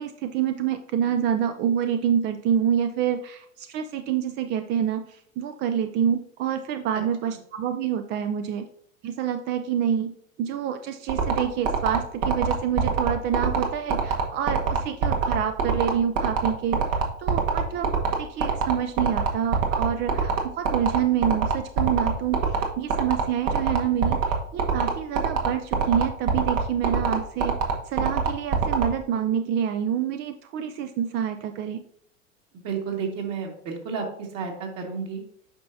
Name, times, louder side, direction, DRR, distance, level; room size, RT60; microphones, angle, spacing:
voice 1, 0.0-8.7 9.0-10.1 10.4-17.9 18.2-27.5 27.9-31.8, right 9 dB, 30° right, 8 dB, 0.4 m, -27 dB
sound 1, 11.1-28.8, right 6 dB, 60° right, 1.7 m, -23 dB
voice 2, 32.6-34.0 34.3-35.2, right 6 dB, 45° right, 1 dB, 2.2 m, -31 dB
8.6 x 5.6 x 2.7 m, 0.70 s
hypercardioid pair, 100°, 40 cm